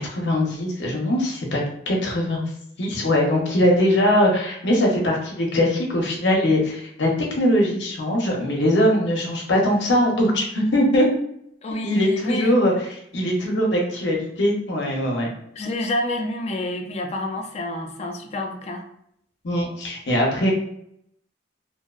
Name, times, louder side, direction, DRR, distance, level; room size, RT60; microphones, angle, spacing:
voice 1, 0.0-1.6 1.9-2.5 2.8-11.1 11.8-12.7 13.1-15.3 19.4-20.5, left 1 dB, 70° left, -1 dB, 0.7 m, -21 dB
voice 2, 11.6-12.5 15.5-18.8, left 1 dB, 35° left, 3 dB, 0.4 m, -28 dB
2.6 x 2.0 x 2.3 m, 0.73 s
head